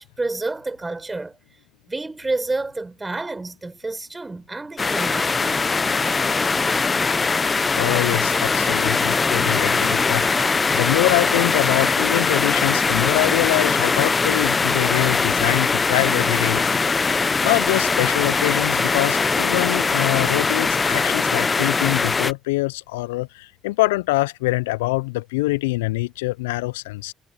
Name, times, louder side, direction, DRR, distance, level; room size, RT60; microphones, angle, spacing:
voice 1, 0.0-1.4 1.9-5.6, right 3 dB, 20° right, 4.7 m, -29 dB
sound 1, 4.8-22.3, left 4 dB, 30° left, 0.8 m, -21 dB
voice 2, 7.7-16.8 17.1-27.1, left 21 dB, 80° left, 0.6 m, -24 dB
hypercardioid pair, 50°, 0 cm